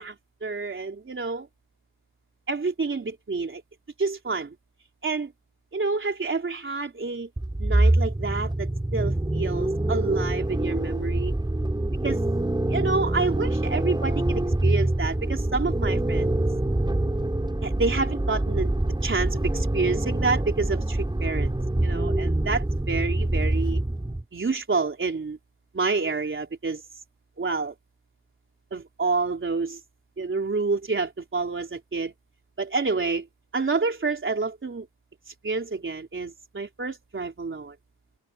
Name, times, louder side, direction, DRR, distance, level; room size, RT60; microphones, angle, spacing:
voice 1, 0.0-1.5 2.5-3.6 4.0-4.6 5.0-5.3 5.7-7.3 7.6-11.3 12.0-12.2 12.7-16.3 17.6-21.5 21.8-23.8 24.3-25.4 25.7-26.8 27.4-27.7 28.7-29.8 30.2-32.1 32.6-33.3 33.5-34.9 35.4-37.8, right 4 dB, 30° right, 3.8 m, -28 dB
sound 1, 7.4-24.2, right 1 dB, 10° right, 6.9 m, -25 dB
open air
wide cardioid pair, 165°, 43 cm